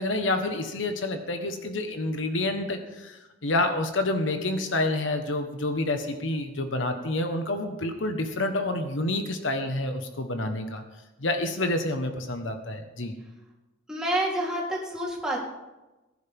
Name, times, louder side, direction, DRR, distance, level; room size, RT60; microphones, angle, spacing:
voice 1, 0.0-10.8 11.2-13.1, left 2 dB, 75° left, 6 dB, 1.3 m, -28 dB
voice 2, 13.9-15.4, right 1 dB, 5° right, -5 dB, 3.5 m, -28 dB
20.0 x 11.0 x 3.6 m, 1.1 s
head